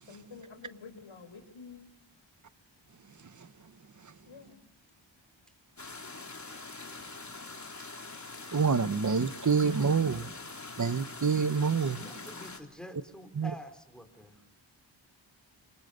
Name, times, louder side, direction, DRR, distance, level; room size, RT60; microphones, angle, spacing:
voice 1, 0.1-1.9 4.3-4.6, left 5 dB, 85° left, 4.7 m, -49 dB
sound 1, 5.8-12.6, left 3 dB, 40° left, 3.8 m, -44 dB
voice 2, 8.5-10.3 10.8-12.0 13.4-13.5, right 5 dB, 40° right, 1.0 m, -27 dB
voice 3, 11.9-14.4, equal, ahead, 4.5 m, -47 dB
28.0 x 24.0 x 6.8 m
wide cardioid pair, 120°, 46 cm